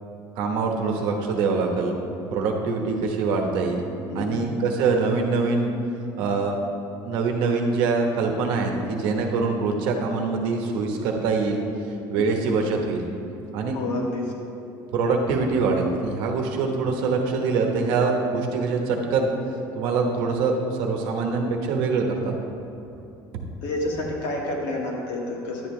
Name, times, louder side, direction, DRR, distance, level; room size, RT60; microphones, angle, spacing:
voice 1, 0.4-2.0 2.3-3.8 4.1-5.7 6.2-6.6 7.0-11.6 12.1-13.1 13.5-13.8 14.9-19.3 19.7-22.3, right 4 dB, 65° right, 2 dB, 1.1 m, -24 dB
voice 2, 4.1-4.4 13.7-14.3 23.6-25.7, left 2 dB, 60° left, -2 dB, 1.7 m, -29 dB
10.5 x 8.9 x 3.2 m, 2.8 s
cardioid pair, 180°, 9 cm